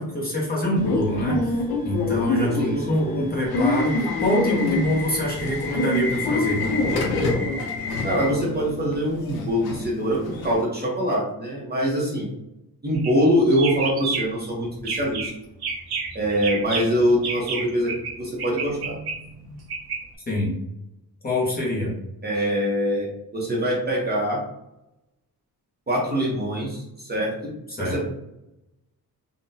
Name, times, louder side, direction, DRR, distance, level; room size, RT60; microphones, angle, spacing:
voice 1, 0.0-6.6 20.3-20.5 21.2-21.9 27.8-27.9, left 1 dB, 25° left, -4 dB, 0.8 m, -25 dB
Subway metro underground / Alarm, 0.8-10.6, left 2 dB, 70° left, 0.7 m, -26 dB
voice 2, 2.6-3.0 8.0-12.3 12.8-15.3 16.1-17.9 18.2-19.0 22.2-23.1 23.3-24.4 25.9-27.3 27.8-28.0, equal, 25° right, -5 dB, 0.8 m, -23 dB
sound 1, 12.9-13.2 13.5-14.4 14.8-15.3 15.6-18.1 18.4-20.0, right 5 dB, 80° right, 0.9 m, -30 dB
3.7 x 2.2 x 2.6 m, 0.86 s
wide cardioid pair, 175°, 38 cm